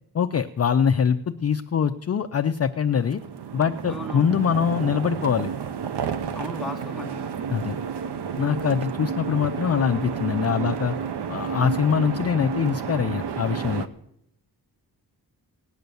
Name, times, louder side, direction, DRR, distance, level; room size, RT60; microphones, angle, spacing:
voice 1, 0.1-3.2 3.5-5.5 7.5-7.8 8.4-10.9 11.3-13.9, left 7 dB, 40° left, 7 dB, 0.5 m, -23 dB
sound 1, 2.9-13.9, right 7 dB, 85° right, 1.0 m, -31 dB
voice 2, 3.9-4.4 6.3-7.2, left 1 dB, ahead, 2 dB, 1.4 m, -35 dB
18.0 x 9.2 x 6.9 m, 0.75 s
wide cardioid pair, 165°, 40 cm